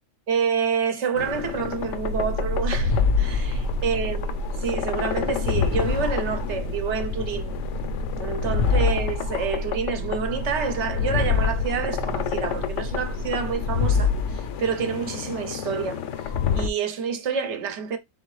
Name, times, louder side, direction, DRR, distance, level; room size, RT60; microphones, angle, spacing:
voice 1, 0.3-7.5 8.2-16.0 16.5-18.0, right 6 dB, 65° right, 0.9 m, -28 dB
sound 1, 1.2-16.7, left 6 dB, 75° left, 0.9 m, -27 dB
sound 2, 1.3-13.5, equal, 45° right, 0.6 m, -31 dB
3.8 x 3.7 x 3.1 m
omnidirectional pair, 1.3 m